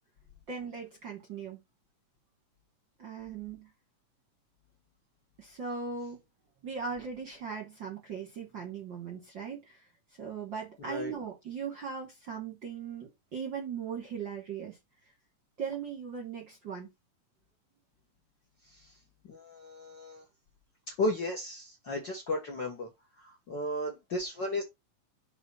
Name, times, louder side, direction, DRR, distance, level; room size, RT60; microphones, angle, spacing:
voice 1, 0.5-1.6 3.0-3.7 5.4-6.2 6.6-9.9 10.2-14.8 15.6-16.9, right 6 dB, 55° right, 1.4 m, -39 dB
voice 2, 19.3-20.2 21.0-22.9 23.2-24.6, left 1 dB, 50° left, 1.4 m, -34 dB
6.1 x 3.8 x 5.5 m
omnidirectional pair, 3.9 m